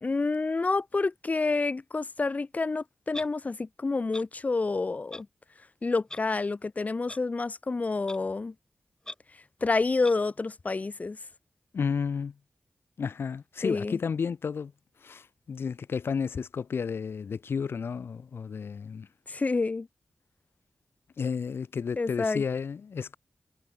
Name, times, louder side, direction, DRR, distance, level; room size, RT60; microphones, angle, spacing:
voice 1, 0.0-5.3 5.8-8.5 9.6-11.2 13.6-14.0 19.3-19.9 22.0-22.4, left 3 dB, 40° left, 1.4 m, -28 dB
Clock, 3.1-3.3 4.1-4.2 5.1-5.2 6.1-6.2 7.1-7.2 8.1-8.2 9.0-9.1 10.0-10.1, left 1 dB, 20° left, 3.0 m, -40 dB
voice 2, 11.7-12.3 13.0-14.7 15.0-19.1 21.2-23.2, left 6 dB, 85° left, 1.5 m, -32 dB
wide cardioid pair, 90°, 4 cm